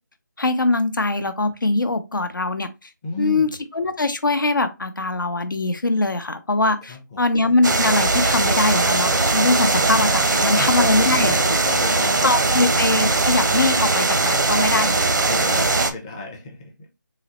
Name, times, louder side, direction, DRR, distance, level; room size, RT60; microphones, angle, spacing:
voice 1, 0.4-2.9 3.2-3.5 3.7-11.3 12.2-15.0, left 2 dB, 85° left, 0.8 m, -22 dB
voice 2, 3.0-3.6 6.8-7.3 10.2-12.7 15.2-16.9, left 2 dB, 15° left, 0.5 m, -32 dB
sound 1, 7.6-15.9, right 3 dB, 75° right, 0.7 m, -20 dB
4.0 x 2.0 x 4.0 m
figure-of-eight pair, 160°, 11 cm